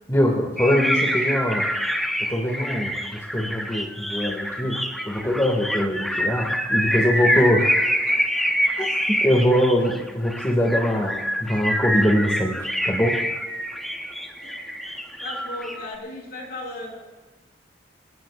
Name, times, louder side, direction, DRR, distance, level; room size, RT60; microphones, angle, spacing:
voice 1, 0.1-1.7 2.3-7.7 8.8-13.2, equal, 15° left, -1 dB, 2.2 m, -23 dB
sound 1, 0.6-15.9, equal, ahead, 1.0 m, -26 dB
voice 2, 7.1-7.5 7.8-8.2 8.6-8.7 15.2-17.0, left 2 dB, 60° left, -2 dB, 6.9 m, -36 dB
28.5 x 17.0 x 2.5 m, 1.2 s
head